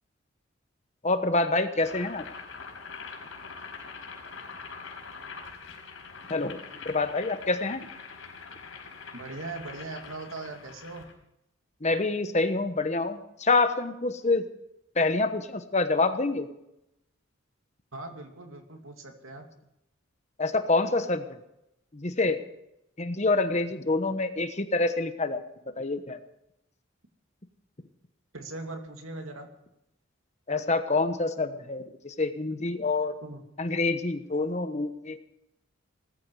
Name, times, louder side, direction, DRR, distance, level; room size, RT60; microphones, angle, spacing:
voice 1, 1.0-2.3 6.3-6.6 6.8-7.8 11.8-14.4 14.9-16.5 20.4-21.4 21.9-22.4 23.0-25.4 25.7-26.2 30.5-33.1 33.6-35.2, left 3 dB, 35° left, 9 dB, 1.1 m, -27 dB
Boiling, 1.7-11.1, left 5 dB, 75° left, 4.7 m, -44 dB
voice 2, 9.1-11.1 17.9-19.5 28.3-29.5 33.2-33.4, right 2 dB, 80° right, 4 dB, 2.5 m, -40 dB
19.0 x 14.5 x 4.9 m, 0.84 s
head